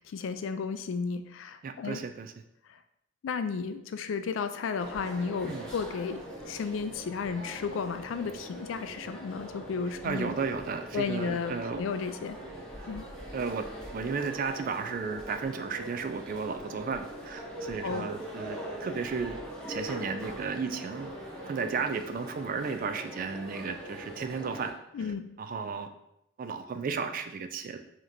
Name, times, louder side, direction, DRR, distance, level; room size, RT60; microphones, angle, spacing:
voice 1, 0.0-2.0 2.7-2.8 3.2-10.3 10.9-12.4 12.9-13.0 17.8-18.1 24.9-25.3, left 5 dB, 75° left, 10 dB, 0.3 m, -33 dB
voice 2, 1.6-2.3 5.4-5.7 10.0-11.8 13.3-13.6 13.9-19.3 19.7-21.1 21.4-24.7 25.4-25.9 26.4-27.8, right 5 dB, 45° right, 8 dB, 0.3 m, -34 dB
sound 1, 4.8-24.7, equal, 5° left, 0.9 m, -42 dB
5.0 x 2.9 x 2.6 m, 0.79 s
head